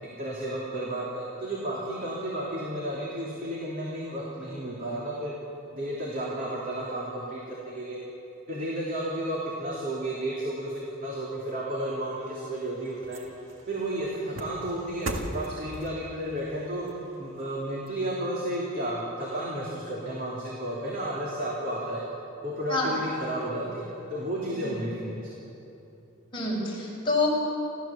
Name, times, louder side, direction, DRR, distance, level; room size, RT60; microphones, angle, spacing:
voice 1, 0.0-5.3 5.7-8.0 8.5-13.2 13.7-16.9 17.2-22.0 22.4-25.3, right 1 dB, 45° right, -5 dB, 3.2 m, -32 dB
sound 1, 12.1-18.6 19.0-19.1, right 1 dB, 70° right, 2.0 m, -41 dB
voice 2, 26.3-27.3, left 3 dB, 25° left, -5 dB, 6.3 m, -27 dB
30.0 x 13.5 x 7.4 m, 2.9 s
head